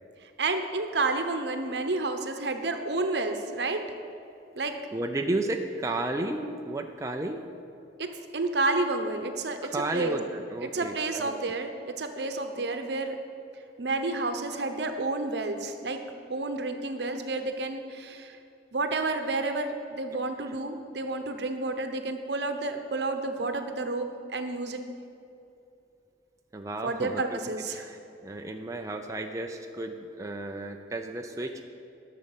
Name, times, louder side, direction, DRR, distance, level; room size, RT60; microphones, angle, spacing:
voice 1, 0.4-3.8 4.6-4.7 8.0-9.6 9.9-10.2 10.6-13.2 13.8-16.0 16.3-18.4 18.7-24.8 26.8-27.9, right 3 dB, 65° right, 7 dB, 0.9 m, -30 dB
voice 2, 4.6-7.5 9.6-11.4 20.4-20.5 26.5-27.4 27.7-31.7, right 2 dB, 20° right, 3 dB, 0.5 m, -33 dB
12.0 x 6.6 x 7.2 m, 2.7 s
head